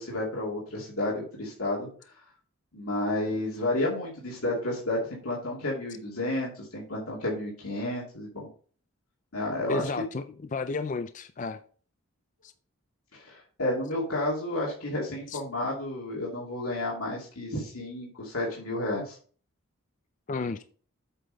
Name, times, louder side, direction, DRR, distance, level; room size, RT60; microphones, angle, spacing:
voice 1, 0.0-2.1 2.7-8.5 9.3-9.9 13.1-19.2, left 1 dB, 80° left, 2.5 m, -31 dB
voice 2, 9.7-10.2 10.5-11.6 12.4-12.5 15.3-15.4 20.3-20.6, left 4 dB, 35° left, 0.4 m, -32 dB
8.2 x 5.9 x 4.0 m
head